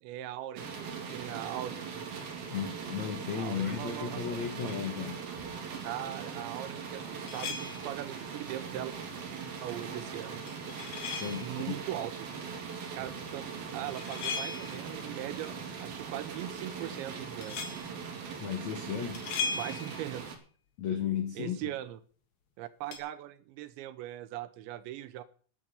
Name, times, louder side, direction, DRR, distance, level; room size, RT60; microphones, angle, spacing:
voice 1, 0.0-2.1 3.3-4.4 5.8-8.9 9.6-10.4 11.4-12.3 12.9-13.5 13.7-15.6 15.8-17.6 19.6-20.2 21.4-22.0 22.6-25.2, right 13 dB, 80° right, 13 dB, 2.8 m, -40 dB
sound 1, 0.6-20.4, right 6 dB, 55° right, 3.9 m, -40 dB
voice 2, 2.5-5.2 11.2-11.8 18.4-19.3 20.8-21.8, left 8 dB, 90° left, 6 dB, 1.5 m, -35 dB
sound 2, 7.3-8.0 10.5-11.6 13.7-14.9 17.4-17.9 19.1-20.2 22.9-23.0, left 5 dB, 50° left, 2.3 m, -37 dB
11.5 x 9.7 x 6.9 m, 0.43 s
omnidirectional pair, 5.6 m